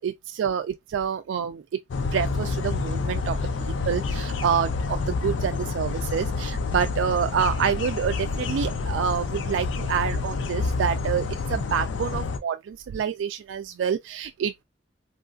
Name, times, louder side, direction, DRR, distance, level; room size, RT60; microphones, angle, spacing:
voice 1, 0.0-1.6 2.1-3.4 3.7-14.6, right 7 dB, 90° right, 0.3 m, -27 dB
sound 1, 1.9-12.4, left 4 dB, 75° left, 0.4 m, -28 dB
3.1 x 2.4 x 2.4 m
head